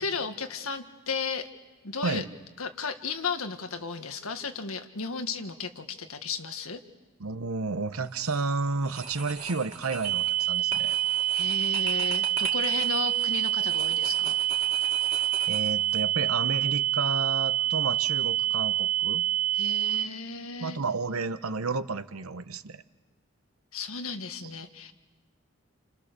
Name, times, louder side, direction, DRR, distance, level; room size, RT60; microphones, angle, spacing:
voice 1, 0.0-1.5 1.8-2.2 2.6-6.8 11.3-14.4 19.5-20.8 23.7-24.9, left 5 dB, 85° left, 6 dB, 1.7 m, -34 dB
voice 2, 7.2-10.9 15.5-19.3 20.6-22.8, right 4 dB, 90° right, 12 dB, 1.0 m, -31 dB
sound 1, 8.0-8.4 8.8-16.0, right 3 dB, 30° right, 2.4 m, -40 dB
sound 2, 10.0-20.0, right 13 dB, 55° right, 1.4 m, -27 dB
29.0 x 28.5 x 6.8 m, 1.2 s
head